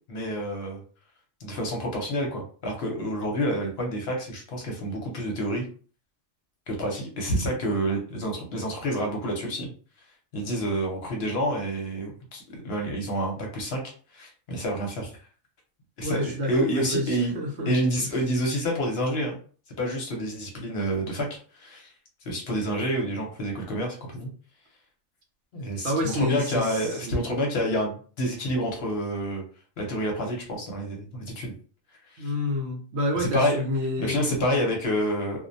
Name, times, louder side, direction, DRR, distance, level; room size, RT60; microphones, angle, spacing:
voice 1, 0.1-0.8 1.4-5.6 6.7-9.7 10.3-13.8 14.1-15.1 16.0-17.3 17.7-19.4 19.8-21.9 22.2-24.3 25.5-29.4 29.8-31.5 32.1-32.3 33.2-33.6 34.0-35.5, equal, 60° left, 0 dB, 0.9 m, -28 dB
voice 2, 16.0-17.7 25.8-27.3 32.2-34.2, left 1 dB, 65° right, 1 dB, 0.8 m, -28 dB
2.3 x 2.1 x 2.6 m, 0.41 s
omnidirectional pair, 1.3 m